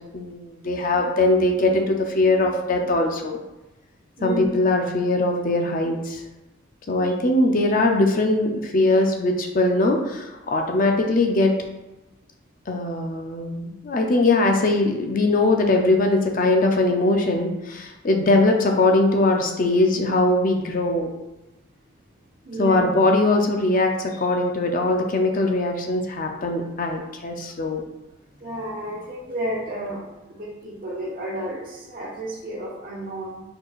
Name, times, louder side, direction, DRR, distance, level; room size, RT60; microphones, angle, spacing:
voice 1, 0.1-3.4 4.2-6.2 6.9-11.5 12.7-21.1 22.6-27.8, left 2 dB, 45° left, 2 dB, 0.5 m, -21 dB
voice 2, 4.2-4.5 22.4-22.8 28.4-33.4, right 1 dB, 45° right, -4 dB, 1.2 m, -32 dB
4.7 x 4.5 x 2.4 m, 1.0 s
head